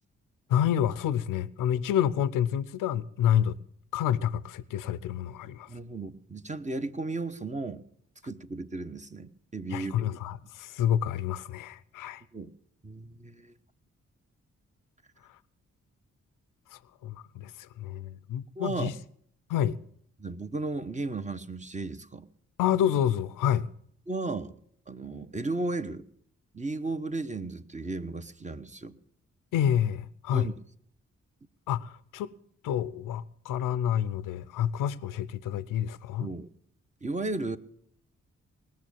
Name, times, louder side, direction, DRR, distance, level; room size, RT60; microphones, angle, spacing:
voice 1, 0.5-3.6 3.9-5.7 9.7-12.2 16.7-18.9 19.5-19.8 22.6-23.7 29.5-30.5 31.7-32.3 32.6-36.3, left 10 dB, 85° left, 0.6 m, -28 dB
voice 2, 5.7-7.8 8.2-10.1 12.3-12.5 12.8-13.5 18.6-18.9 20.2-22.3 24.1-24.6 24.9-26.0 26.5-29.0 30.3-30.5 36.2-36.5 37.0-37.6, right 3 dB, 25° right, 1.1 m, -35 dB
19.0 x 6.4 x 8.5 m
supercardioid pair, 45°, 31 cm